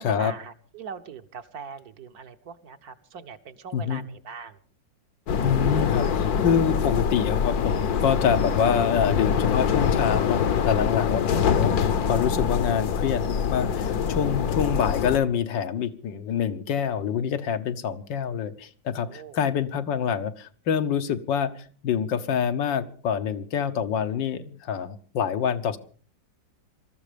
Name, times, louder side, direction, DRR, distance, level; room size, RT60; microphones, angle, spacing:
voice 1, 0.0-4.6 19.0-19.4, right 6 dB, 60° right, 8 dB, 1.4 m, -41 dB
sound 1, 5.3-15.2, left 7 dB, 60° left, 1.4 m, -24 dB
voice 2, 5.4-13.2 13.5-25.8, left 7 dB, 80° left, 9 dB, 1.7 m, -26 dB
20.5 x 13.5 x 5.1 m, 0.43 s
omnidirectional pair, 2.0 m